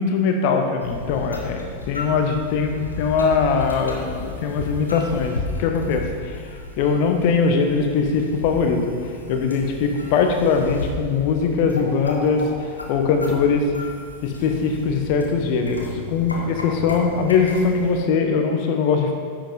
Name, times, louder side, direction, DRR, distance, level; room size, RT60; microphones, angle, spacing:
voice 1, 0.0-6.4 6.8-8.8 9.3-13.6 14.2-19.1, left 5 dB, 45° left, 4 dB, 1.1 m, -21 dB
sound 1, 0.8-18.0, left 2 dB, 80° left, 1.2 m, -34 dB
10.5 x 7.0 x 3.8 m, 2.3 s
figure-of-eight pair, 90°, 0 cm